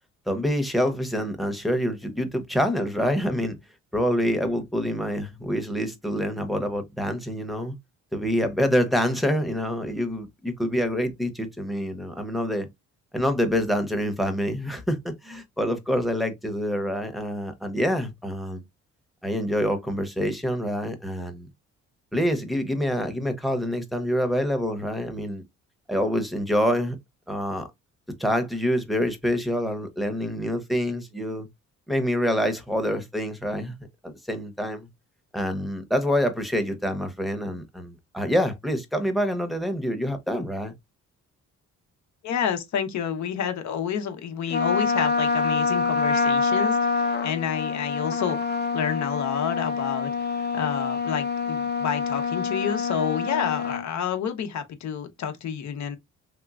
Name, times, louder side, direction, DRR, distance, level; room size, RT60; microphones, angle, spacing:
voice 1, 0.3-3.6 3.9-7.7 8.1-12.7 13.1-18.6 19.2-21.5 22.1-25.4 25.9-27.0 27.3-27.7 28.2-31.5 31.9-33.7 34.0-34.9 35.3-40.7, equal, ahead, 0.8 m, -26 dB
voice 2, 42.2-56.0, left 8 dB, 65° left, 0.9 m, -29 dB
Trumpet, 44.5-53.8, left 4 dB, 35° left, 0.7 m, -26 dB
3.3 x 2.9 x 2.4 m
cardioid pair, 90°, 30 cm